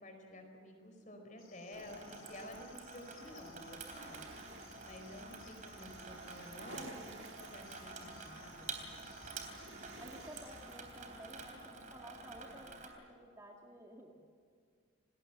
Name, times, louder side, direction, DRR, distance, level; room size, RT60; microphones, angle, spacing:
voice 1, 0.0-4.6 4.8-7.1 7.4-8.9, left 1 dB, 40° left, 4 dB, 4.6 m, -51 dB
Cricket, 1.4-10.8, left 7 dB, 90° left, 4.8 m, -63 dB
Water tap faucet / Sink (filling or washing), 1.7-12.9, right 4 dB, 40° right, 3.5 m, -49 dB
sound 1, 3.2-11.4, right 3 dB, 60° right, 1.7 m, -55 dB
voice 2, 10.0-14.1, equal, 15° right, 0 dB, 1.9 m, -53 dB
28.5 x 20.0 x 7.3 m, 2.1 s
head